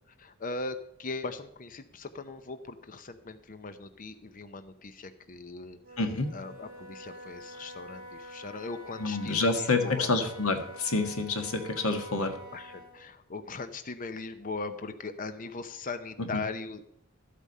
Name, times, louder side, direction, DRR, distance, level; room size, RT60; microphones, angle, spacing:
voice 1, 0.1-5.8 6.3-10.1 12.5-16.8, left 3 dB, 40° left, 10 dB, 0.7 m, -39 dB
Wind instrument woodwind instrument, 5.8-13.0, equal, 45° right, 4.4 m, -47 dB
voice 2, 9.0-12.3 16.3-16.4, left 3 dB, 85° left, 6 dB, 1.6 m, -28 dB
12.5 x 8.4 x 5.5 m, 0.75 s
head